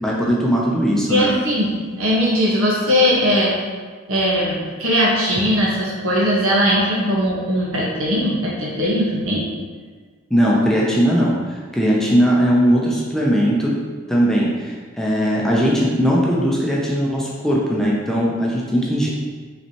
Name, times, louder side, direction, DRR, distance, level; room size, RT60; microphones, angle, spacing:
voice 1, 0.0-1.3 10.3-13.8 14.1-19.1, equal, ahead, -4 dB, 0.5 m, -19 dB
voice 2, 1.1-1.7 2.0-3.5 4.1-9.4, equal, 85° right, -4 dB, 1.3 m, -19 dB
5.6 x 3.2 x 2.9 m, 1.5 s
head